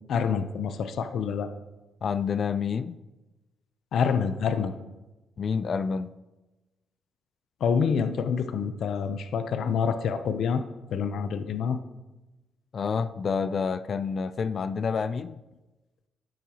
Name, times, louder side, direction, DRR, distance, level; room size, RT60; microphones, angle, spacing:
voice 1, 0.1-1.5 3.9-4.7 7.6-10.6 10.9-11.8, left 6 dB, 65° left, 9 dB, 0.7 m, -27 dB
voice 2, 2.0-3.0 5.4-6.1 12.7-15.4, left 6 dB, 45° left, 14 dB, 0.4 m, -28 dB
13.0 x 9.1 x 3.0 m, 1.1 s
cardioid pair, 90°, 0 cm